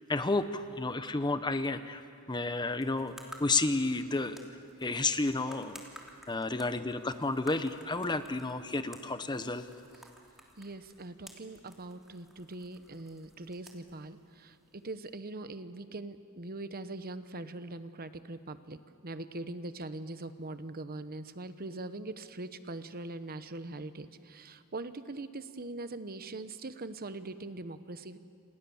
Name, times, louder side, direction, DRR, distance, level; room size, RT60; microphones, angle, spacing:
voice 1, 0.1-2.0 2.3-3.1 3.4-4.4 4.8-5.8 6.3-9.6, left 3 dB, 20° left, 10 dB, 0.9 m, -31 dB
sound 1, 2.7-15.1, equal, ahead, 3.0 m, -55 dB
voice 2, 10.6-18.8 19.0-28.2, right 2 dB, 45° right, 11 dB, 1.0 m, -42 dB
29.0 x 27.5 x 7.2 m, 2.4 s
head